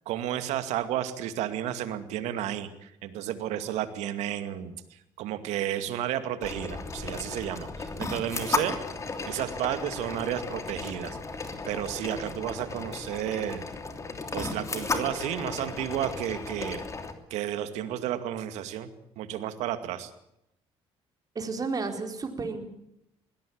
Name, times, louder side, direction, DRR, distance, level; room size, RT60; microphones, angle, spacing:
voice 1, 0.1-8.8 9.2-11.2 11.7-13.6 14.3-16.8 17.3-18.9 19.2-20.1, right 11 dB, 80° right, 10 dB, 2.3 m, -32 dB
sound 1, 6.4-17.1, left 3 dB, 25° left, 3.1 m, -35 dB
voice 2, 21.3-22.7, right 4 dB, 35° right, 5 dB, 4.4 m, -32 dB
21.0 x 17.0 x 8.8 m, 0.80 s
cardioid pair, 95°, 11 cm